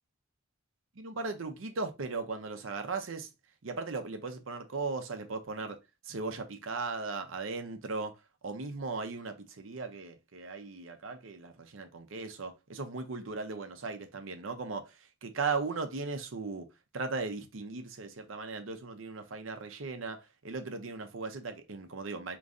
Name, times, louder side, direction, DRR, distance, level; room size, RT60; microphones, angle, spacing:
voice 1, 1.0-3.3 3.6-5.8 6.0-16.7 16.9-22.4, right 4 dB, 75° right, 0.7 m, -37 dB
4.8 x 3.0 x 2.6 m
head